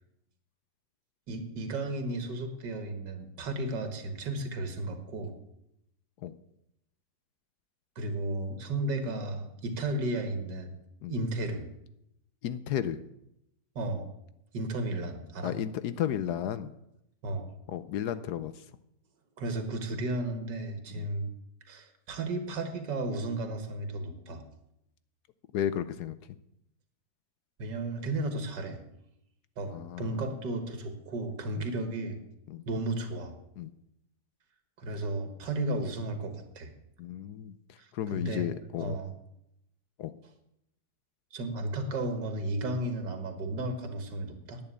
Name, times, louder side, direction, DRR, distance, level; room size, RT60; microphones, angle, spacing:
voice 1, 1.3-5.4 8.0-10.8 11.1-11.7 13.8-14.1 14.5-15.5 17.2-17.5 19.4-21.3 21.7-24.4 27.6-28.8 29.6-29.7 30.0-32.2 32.7-33.4 34.8-36.7 37.8-38.5 38.8-39.1 41.3-44.6, right 2 dB, 85° right, 7 dB, 2.2 m, -34 dB
voice 2, 12.4-13.0 15.4-16.7 17.7-18.5 20.9-21.1 25.5-26.2 29.7-30.2 31.6-31.7 32.5-32.6 33.6-33.7 37.0-37.6 37.9-39.0 40.0-40.1, left 10 dB, 75° left, 14 dB, 1.2 m, -33 dB
10.5 x 8.7 x 8.3 m, 0.82 s
omnidirectional pair, 1.8 m